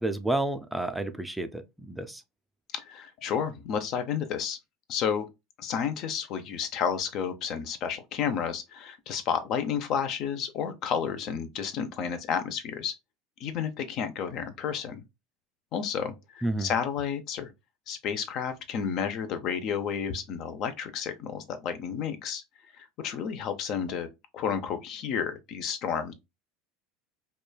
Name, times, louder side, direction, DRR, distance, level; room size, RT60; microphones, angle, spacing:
voice 1, 0.0-2.2 16.4-16.7, right 2 dB, 5° right, 0.4 m, -30 dB
voice 2, 2.7-4.6 4.9-5.3 5.6-12.9 13.4-15.0 15.7-17.5 17.9-22.4 22.8-24.1 24.3-26.1, left 7 dB, 55° left, 0.5 m, -31 dB
3.0 x 2.2 x 2.2 m
supercardioid pair, 95°, 0 cm